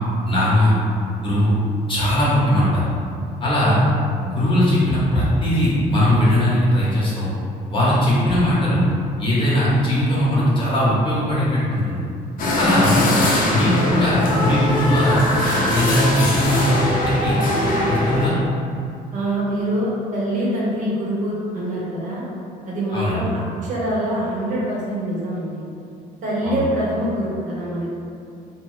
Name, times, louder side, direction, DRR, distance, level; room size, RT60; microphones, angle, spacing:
voice 1, 0.2-0.7 1.2-1.5 1.9-2.9 3.4-3.8 4.2-7.3 7.7-8.9 9.2-12.0 12.6-13.0 13.5-15.2 15.7-16.7 17.0-17.4 17.8-18.4 22.9-23.2 26.4-26.6, left 1 dB, 30° left, -8 dB, 0.9 m, -19 dB
sound 1, 12.4-18.3, left 1 dB, 55° left, 0.6 m, -21 dB
voice 2, 19.1-22.2 22.6-25.6 26.2-27.9, right 1 dB, 50° right, -6 dB, 0.8 m, -24 dB
2.9 x 2.0 x 3.1 m, 2.5 s
cardioid pair, 110°, 17 cm